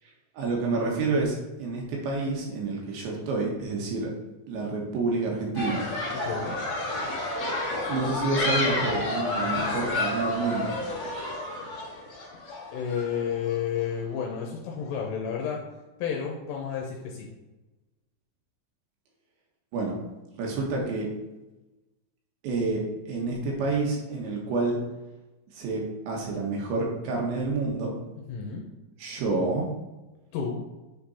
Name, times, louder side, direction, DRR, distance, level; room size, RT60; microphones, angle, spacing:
voice 1, 0.4-4.1 4.5-5.8 7.9-10.7 19.7-20.0 20.4-21.1 22.4-24.8 25.5-27.9 29.0-29.7, right 3 dB, 85° right, -1 dB, 3.8 m, -28 dB
sound 1, 5.5-13.5, left 2 dB, 45° left, 1.2 m, -30 dB
voice 2, 6.1-6.6 12.7-15.6 16.0-17.3 28.3-28.7 30.3-30.6, left 7 dB, 80° left, -1 dB, 2.8 m, -31 dB
9.3 x 3.9 x 4.3 m, 1.1 s
omnidirectional pair, 5.1 m